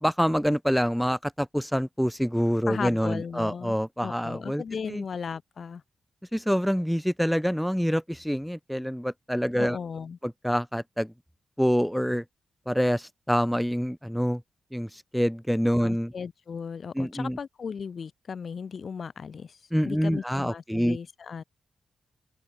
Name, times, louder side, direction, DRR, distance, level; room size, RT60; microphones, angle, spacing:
voice 1, 0.0-4.6 4.9-5.0 6.3-9.8 10.2-11.1 11.6-12.2 12.7-14.4 14.7-16.1 17.0-17.4 19.7-21.0, equal, ahead, 1.8 m, -26 dB
voice 2, 2.7-3.8 4.0-5.8 9.6-10.2 15.8-21.4, left 6 dB, 55° left, 7.2 m, -36 dB
wide cardioid pair, 105°, 0 cm